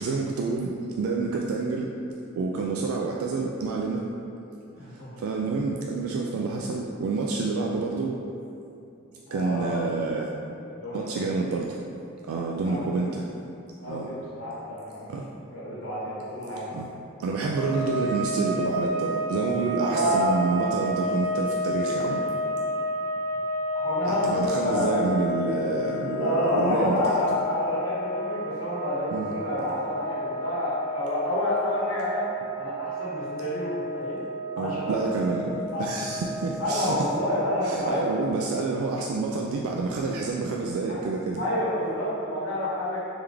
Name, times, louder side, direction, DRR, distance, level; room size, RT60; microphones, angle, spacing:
voice 1, 0.0-1.9 2.4-4.1 5.2-8.2 9.3-10.3 10.9-11.8 12.3-13.2 13.8-14.1 15.1-15.2 16.7-16.9 17.2-22.2 24.1-27.2 29.1-29.4 34.6-37.0 37.6-41.4, right 3 dB, 85° right, 0 dB, 0.3 m, -28 dB
voice 2, 4.8-5.2 9.3-9.9 10.8-11.3 12.6-12.9 13.8-15.0 15.4-16.6 19.8-20.4 23.7-24.9 26.2-32.3 32.6-34.2 34.6-35.0 35.7-35.8 36.6-38.1 40.9-41.0 41.4-43.1, left 1 dB, 70° left, -8 dB, 1.2 m, -29 dB
sound 1, 17.5-37.1, equal, 10° right, 0.5 m, -31 dB
3.5 x 3.3 x 3.3 m, 2.7 s
head